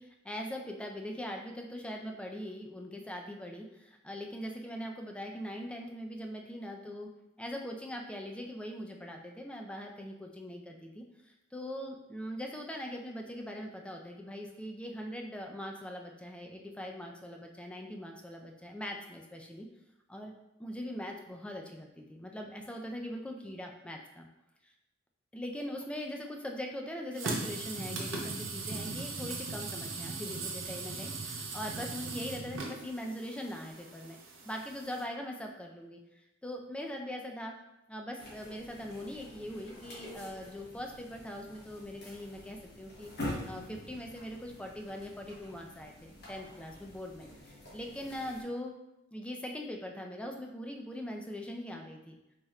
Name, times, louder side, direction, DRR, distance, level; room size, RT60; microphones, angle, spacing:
voice 1, 0.0-7.1 7.4-19.7 20.1-20.3 20.6-24.3 24.6-24.7 25.3-34.2 34.4-37.5 37.9-43.1 43.4-47.3 47.7-48.7 49.1-52.2, equal, 5° left, 1 dB, 0.3 m, -41 dB
sound 1, 27.1-35.0, right 3 dB, 70° right, 0.6 m, -39 dB
sound 2, 38.2-48.4, left 1 dB, 55° left, 1.1 m, -46 dB
4.2 x 3.1 x 2.4 m, 0.90 s
head